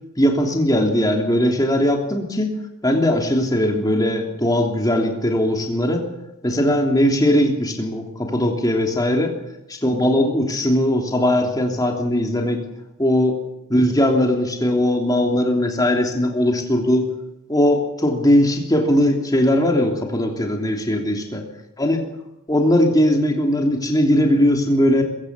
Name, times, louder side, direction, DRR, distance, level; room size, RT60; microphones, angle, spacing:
voice 1, 0.2-2.5 2.8-6.0 6.4-9.3 9.7-12.6 13.0-13.4 13.7-17.1 17.5-21.4 21.8-22.1 22.5-25.0, left 1 dB, 15° left, 2 dB, 3.1 m, -19 dB
22.0 x 15.5 x 8.3 m, 0.90 s
head